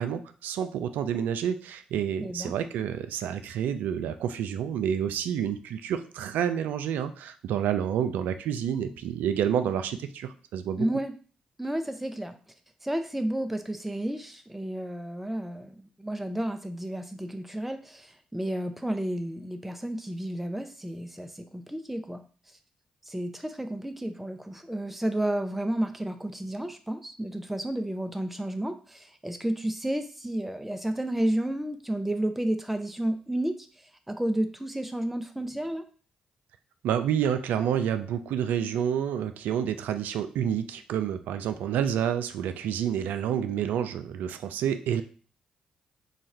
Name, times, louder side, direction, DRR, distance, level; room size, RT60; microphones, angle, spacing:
voice 1, 0.0-10.9 36.8-45.0, right 9 dB, 75° right, 10 dB, 0.3 m, -29 dB
voice 2, 2.2-2.5 10.8-11.1 11.6-12.4 12.8-22.2 23.1-35.8, right 1 dB, 5° right, 7 dB, 0.5 m, -31 dB
3.1 x 2.3 x 4.2 m, 0.41 s
hypercardioid pair, 45°, 3 cm